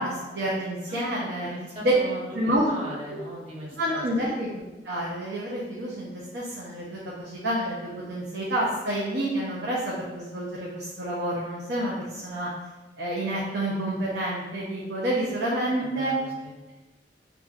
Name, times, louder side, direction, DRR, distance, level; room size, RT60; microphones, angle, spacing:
voice 1, 0.0-1.5 1.8-1.9 2.3-2.7 3.1-3.2 3.8-12.5 13.0-16.1, equal, 80° right, -5 dB, 0.6 m, -29 dB
voice 2, 0.9-4.0 15.8-16.5, right 1 dB, 35° right, -5 dB, 1.0 m, -38 dB
5.4 x 2.3 x 2.4 m, 1.2 s
head